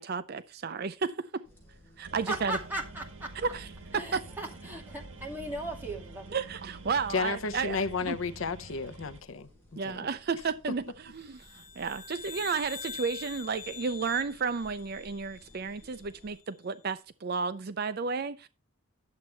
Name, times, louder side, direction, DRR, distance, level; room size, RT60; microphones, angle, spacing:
voice 1, 0.0-1.4 2.0-2.6 3.4-3.7 3.9-4.2 6.3-8.2 9.7-18.5, right 5 dB, 50° right, 0.5 m, -32 dB
sound 1, 1.4-16.4, equal, 10° left, 4.8 m, -57 dB
sound 2, 2.0-9.2, right 2 dB, 80° right, 1.7 m, -47 dB
voice 2, 2.3-3.3 3.9-6.4, right 1 dB, 10° right, 2.4 m, -37 dB
voice 3, 7.1-9.5 9.8-10.1, left 4 dB, 70° left, 0.7 m, -32 dB
sound 3, 11.2-15.8, left 7 dB, 40° left, 1.3 m, -44 dB
10.5 x 7.4 x 4.4 m
head